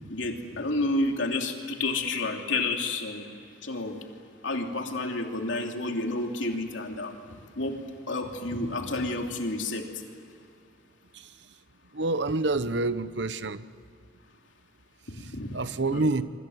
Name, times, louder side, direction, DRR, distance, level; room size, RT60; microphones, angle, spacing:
voice 1, 0.1-3.3 3.6-4.0 4.4-7.2 7.5-7.8 8.1-9.9 15.1-15.6 15.9-16.1, left 2 dB, 80° left, 3.0 m, -30 dB
voice 2, 11.9-13.6 15.5-16.2, right 2 dB, 65° right, 0.9 m, -27 dB
27.0 x 24.5 x 8.0 m
head